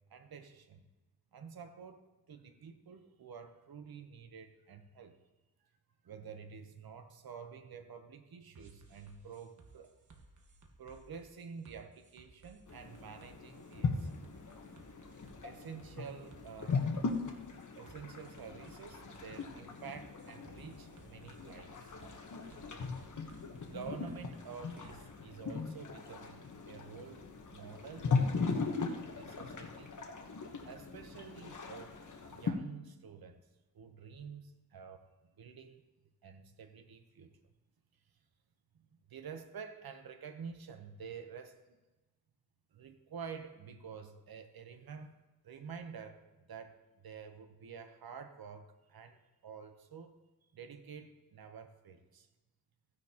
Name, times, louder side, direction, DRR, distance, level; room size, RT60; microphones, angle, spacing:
voice 1, 0.1-0.9 1.3-5.2 6.0-9.9 10.8-14.2 15.4-16.8 17.2-17.3 17.8-22.0 23.7-28.6 29.1-29.9 30.7-33.4 33.7-35.8 36.2-37.3 38.8-41.8 42.7-45.2 45.4-50.1 50.5-52.3, right 6 dB, 85° right, 7 dB, 0.9 m, -49 dB
sound 1, 8.6-25.0, right 3 dB, 55° right, 1.3 m, -60 dB
sound 2, 12.7-32.5, left 4 dB, 55° left, 1.2 m, -39 dB
15.5 x 9.8 x 2.9 m, 1.1 s
wide cardioid pair, 110°, 35 cm